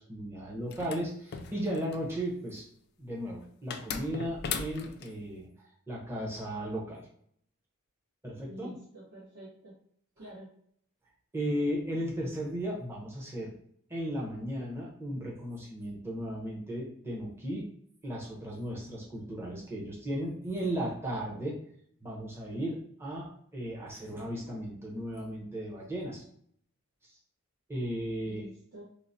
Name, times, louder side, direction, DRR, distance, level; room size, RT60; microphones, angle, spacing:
voice 1, 0.0-2.6 3.0-7.1 8.2-8.7 11.3-13.5 13.9-17.6 18.0-21.6 22.0-26.2 27.7-28.4, equal, 10° right, -3 dB, 0.7 m, -35 dB
sound 1, 0.7-2.1 3.7-5.1, left 6 dB, 50° left, 0.3 m, -38 dB
voice 2, 8.5-9.8 10.2-10.5 28.2-28.8, equal, 55° right, -6 dB, 0.9 m, -47 dB
4.4 x 2.0 x 2.6 m, 0.64 s
head